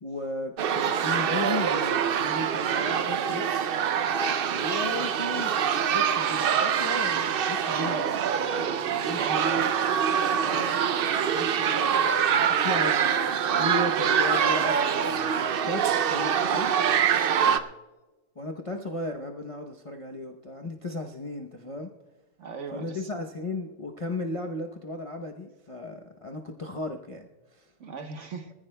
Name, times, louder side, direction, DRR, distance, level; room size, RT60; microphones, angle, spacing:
voice 1, 0.0-3.5 4.5-8.2 9.0-9.7 10.4-10.8 11.3-17.0 18.4-21.9 22.7-27.7, left 2 dB, 35° left, 2 dB, 0.6 m, -35 dB
sound 1, 0.6-17.6, right 8 dB, 80° right, 0.5 m, -25 dB
voice 2, 8.5-9.7 17.4-17.7 22.4-23.1 27.8-28.5, right 5 dB, 55° right, 6 dB, 1.3 m, -40 dB
24.5 x 15.0 x 2.2 m, 1.2 s
omnidirectional pair, 1.6 m